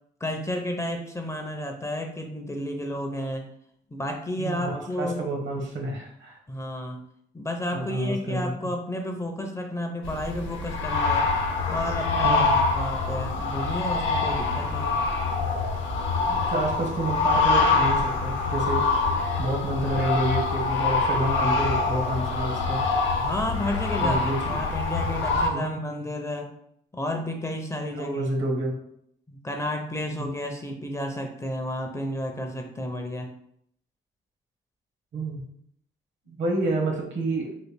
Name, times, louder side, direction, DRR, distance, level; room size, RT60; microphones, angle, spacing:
voice 1, 0.2-3.5 3.9-5.2 6.5-7.0 7.3-11.3 11.7-12.5 12.7-15.0 23.2-26.5 26.9-28.3 29.3-33.3, left 1 dB, 15° left, 3 dB, 0.4 m, -31 dB
voice 2, 4.4-6.4 7.7-8.5 12.2-12.5 16.3-22.8 24.0-24.6 25.5-25.7 27.9-28.7 30.2-30.3 35.1-35.4 36.3-37.7, right 1 dB, 70° right, 0 dB, 1.0 m, -29 dB
sound 1, 10.0-25.5, left 3 dB, 70° left, 0.6 m, -25 dB
3.1 x 2.3 x 3.3 m, 0.70 s
cardioid pair, 90°, 20 cm